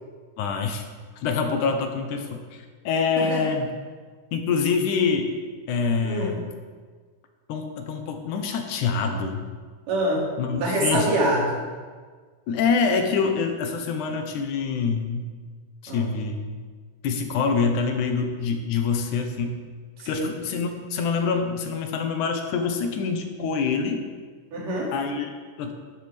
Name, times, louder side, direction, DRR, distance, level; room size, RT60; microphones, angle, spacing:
voice 1, 0.4-0.8 1.2-3.7 4.3-5.3 5.7-6.5 7.5-9.4 10.4-11.1 12.5-15.3 15.8-16.5 17.0-19.6 20.1-24.1 24.9-25.7, left 5 dB, 75° left, 5 dB, 2.3 m, -25 dB
voice 2, 3.2-3.5 6.0-6.4 9.9-10.3 10.6-11.5 15.9-16.1 20.0-20.3 24.5-24.9, right 1 dB, 85° right, -3 dB, 4.0 m, -25 dB
11.5 x 11.5 x 3.4 m, 1.5 s
omnidirectional pair, 3.7 m